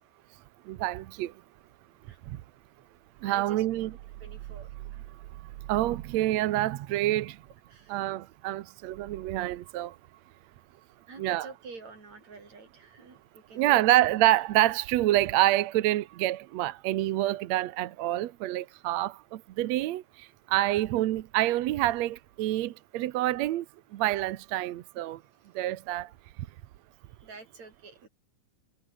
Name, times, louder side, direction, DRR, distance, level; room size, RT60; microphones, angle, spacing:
voice 1, 0.7-1.3 3.2-3.9 5.7-7.4 7.9-10.0 11.2-11.5 13.6-20.0 20.5-23.7 23.9-25.2 25.6-26.1, right 15 dB, 70° right, 1.8 m, -27 dB
voice 2, 3.2-3.7 4.2-5.1 7.7-8.0 11.1-13.8 27.2-28.1, right 4 dB, 55° right, 7.1 m, -48 dB
omnidirectional pair, 3.9 m